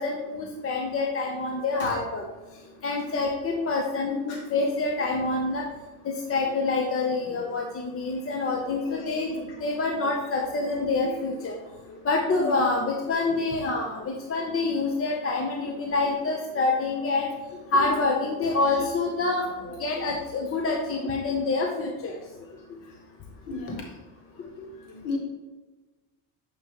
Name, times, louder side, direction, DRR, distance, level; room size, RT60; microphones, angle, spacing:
voice 1, 0.0-2.2 2.8-5.6 6.0-11.6 12.0-17.3 17.7-19.5 19.8-22.2 23.7-23.8 24.4-24.7, left 3 dB, 30° left, 1 dB, 0.9 m, -27 dB
voice 2, 8.6-9.5 11.0-11.2 12.3-12.5 19.7-20.0 23.5-23.8 24.9-25.2, left 3 dB, 80° left, -1 dB, 2.0 m, -36 dB
7.4 x 5.3 x 3.1 m, 1.2 s
supercardioid pair, 90°, 44 cm